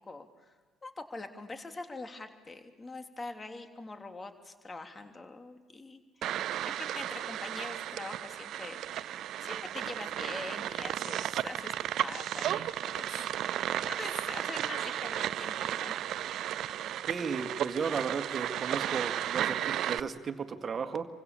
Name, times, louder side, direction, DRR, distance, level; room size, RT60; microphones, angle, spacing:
voice 1, 0.1-0.5 0.8-6.5 6.8-9.0 9.4-13.3 13.9-15.9, left 3 dB, 25° left, 6 dB, 3.1 m, -44 dB
sound 1, 6.2-20.0, right 11 dB, 55° right, 0.8 m, -34 dB
voice 2, 17.1-21.1, right 5 dB, 35° right, 8 dB, 2.0 m, -35 dB
29.5 x 24.5 x 7.0 m, 1.4 s
figure-of-eight pair, 55°, 0 cm